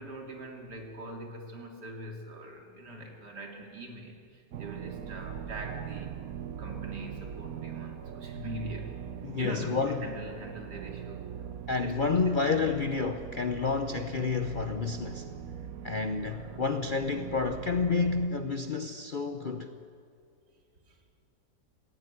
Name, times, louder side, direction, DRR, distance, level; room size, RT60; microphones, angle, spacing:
voice 1, 0.0-6.2 6.6-9.0 9.4-12.3 16.3-16.7 20.9-21.0, right 1 dB, 80° right, 3.1 m, -42 dB
sound 1, 4.5-18.3, right 9 dB, 65° right, 1.1 m, -41 dB
voice 2, 9.2-10.1 11.7-15.3 15.8-19.7, left 4 dB, 50° left, 0.6 m, -29 dB
18.0 x 16.5 x 9.4 m
omnidirectional pair, 1.8 m